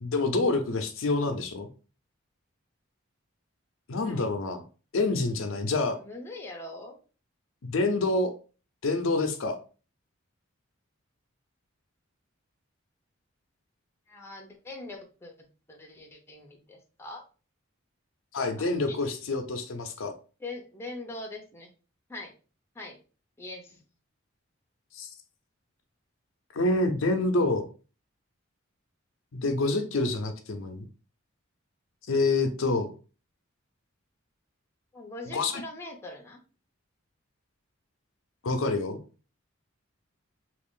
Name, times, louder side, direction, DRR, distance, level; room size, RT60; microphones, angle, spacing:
voice 1, 0.0-1.7 3.9-4.6 4.9-6.0 7.6-8.3 8.8-9.6 18.3-20.1 24.9-25.1 26.5-27.7 29.3-30.8 32.1-32.9 35.3-35.6 38.4-39.0, left 2 dB, 70° left, 6 dB, 0.5 m, -27 dB
voice 2, 6.0-7.0 14.1-15.3 15.7-17.2 18.6-19.2 20.4-21.7 22.1-22.3 22.7-23.0 23.4-23.8 34.9-36.4, left 2 dB, 10° left, 1 dB, 0.6 m, -42 dB
2.9 x 2.5 x 3.6 m, 0.36 s
head